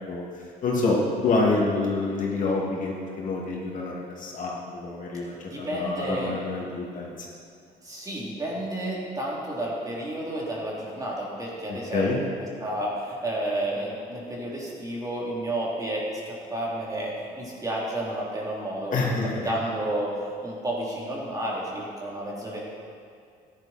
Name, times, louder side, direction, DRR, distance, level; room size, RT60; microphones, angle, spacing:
voice 1, 0.6-7.1 11.7-12.2 18.9-19.5, left 3 dB, 50° left, -3 dB, 2.6 m, -27 dB
voice 2, 5.1-6.3 7.8-12.3 12.6-18.9 19.4-22.6, right 1 dB, 20° right, -5 dB, 3.2 m, -31 dB
14.0 x 10.5 x 4.4 m, 2.3 s
cardioid pair, 110°, 17 cm